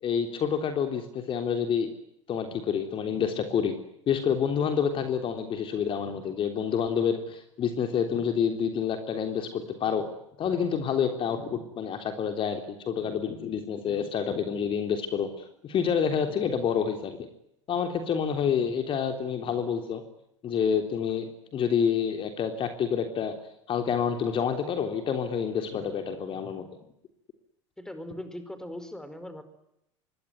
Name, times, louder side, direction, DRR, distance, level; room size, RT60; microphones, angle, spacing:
voice 1, 0.0-1.9 2.3-3.7 4.1-10.0 10.4-17.3 17.7-20.0 20.4-23.4 23.7-26.7, left 7 dB, 35° left, 6 dB, 3.4 m, -28 dB
voice 2, 27.8-29.4, left 1 dB, 5° left, 10 dB, 5.0 m, -39 dB
26.0 x 23.0 x 9.5 m, 0.79 s
figure-of-eight pair, 75°, 16 cm